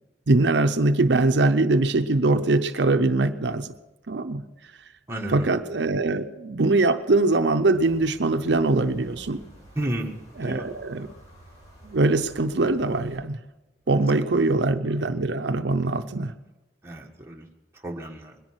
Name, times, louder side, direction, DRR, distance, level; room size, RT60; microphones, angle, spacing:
voice 1, 0.3-3.7 4.1-4.4 5.3-9.4 10.4-11.1 11.8-13.4 13.9-16.3, right 2 dB, 85° right, 8 dB, 0.7 m, -22 dB
voice 2, 5.1-5.5 9.8-10.6 16.8-17.5 17.8-18.3, right 1 dB, 15° right, 0 dB, 1.5 m, -32 dB
sound 1, 7.7-13.2, right 1 dB, 40° left, 6.2 m, -50 dB
21.5 x 10.5 x 6.2 m, 1.1 s
head